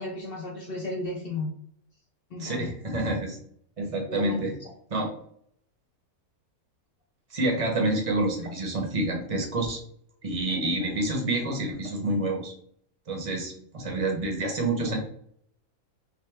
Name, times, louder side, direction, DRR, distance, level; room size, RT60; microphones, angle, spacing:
voice 1, 0.0-1.5 2.3-2.7 4.1-4.4, left 2 dB, 50° left, 0 dB, 0.7 m, -34 dB
voice 2, 2.4-3.4 3.8-4.5 4.9-5.1 7.3-9.8 10.2-12.5 13.1-15.0, right 2 dB, 30° right, 1 dB, 0.7 m, -28 dB
3.2 x 3.0 x 3.3 m, 0.66 s
omnidirectional pair, 1.6 m